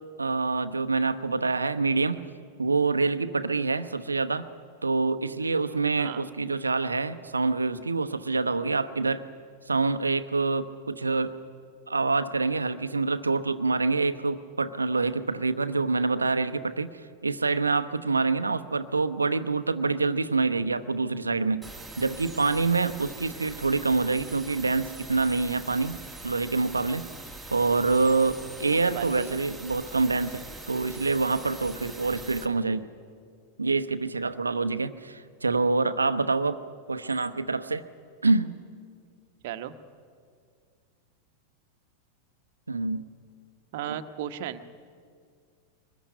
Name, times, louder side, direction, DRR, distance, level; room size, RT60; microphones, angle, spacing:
voice 1, 0.2-2.2 2.6-4.5 4.8-9.2 9.7-11.3 11.9-21.7 22.0-27.1 27.5-32.9 33.6-36.6 36.9-37.9 38.2-38.5 42.7-43.1 43.9-44.0, right 3 dB, 80° right, 11 dB, 0.9 m, -26 dB
sound 1, 21.6-32.5, right 2 dB, ahead, 2.1 m, -43 dB
voice 2, 28.6-29.4 39.4-39.7 43.7-44.6, right 11 dB, 50° right, 10 dB, 1.2 m, -35 dB
23.5 x 20.5 x 9.8 m, 2.1 s
figure-of-eight pair, 90°, 0 cm